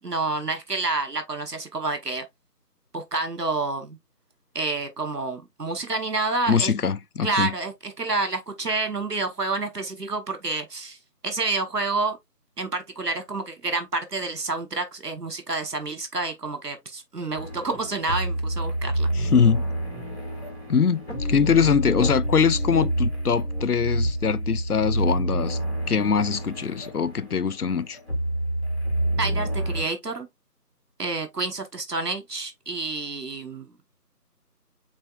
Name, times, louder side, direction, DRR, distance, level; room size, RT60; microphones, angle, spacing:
voice 1, 0.0-2.2 2.9-4.0 4.5-6.7 7.2-11.0 11.2-12.2 12.6-19.1 29.2-30.3 31.0-33.7, right 3 dB, 70° right, 1.1 m, -29 dB
voice 2, 6.5-7.5 19.1-19.6 20.7-25.6 25.9-28.0, left 6 dB, 65° left, 0.5 m, -22 dB
sound 1, 17.3-29.8, right 1 dB, 40° left, 1.6 m, -28 dB
7.4 x 2.7 x 2.3 m
figure-of-eight pair, 180°, 49 cm